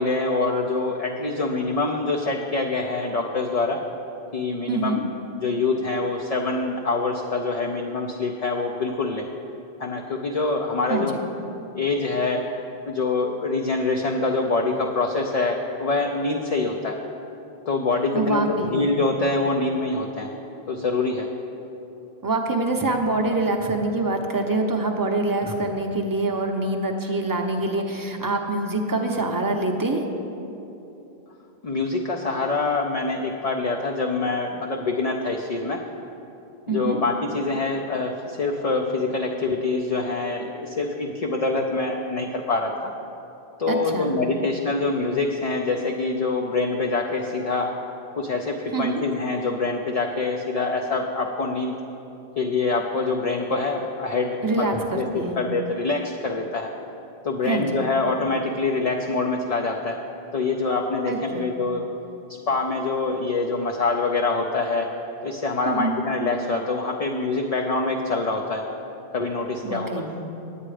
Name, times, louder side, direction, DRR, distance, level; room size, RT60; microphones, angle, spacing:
voice 1, 0.0-3.8 4.3-5.0 5.4-9.3 9.8-11.2 11.7-12.4 12.8-17.0 17.7-20.3 20.7-21.3 31.6-35.8 36.7-42.9 43.6-47.7 48.2-51.8 52.4-54.6 54.9-56.7 57.2-60.0 60.3-61.9 62.5-64.9 65.2-68.7 69.1-70.0, left 3 dB, 45° left, 1 dB, 0.5 m, -25 dB
voice 2, 4.7-5.0 10.9-11.1 18.1-18.9 22.2-30.0 36.7-37.0 43.7-44.2 48.7-49.0 54.4-55.4 57.4-57.8 61.1-61.5 65.7-66.0 69.6-70.2, right 2 dB, 20° right, 2 dB, 0.7 m, -25 dB
10.0 x 8.7 x 4.9 m, 2.9 s
omnidirectional pair, 1.1 m